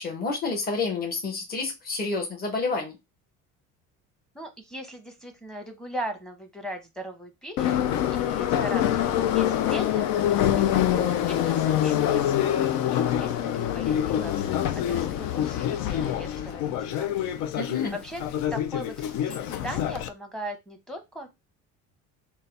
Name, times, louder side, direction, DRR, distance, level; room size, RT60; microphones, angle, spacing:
voice 1, 0.0-3.0 17.5-18.0, left 3 dB, 30° left, 0 dB, 1.4 m, -29 dB
voice 2, 4.3-17.1 17.9-18.2 18.5-21.3, equal, ahead, 5 dB, 0.9 m, -39 dB
Subway metro underground, 7.6-20.1, left 10 dB, 70° left, 0.6 m, -25 dB
4.0 x 2.4 x 4.0 m, 0.21 s
cardioid pair, 130°, 29 cm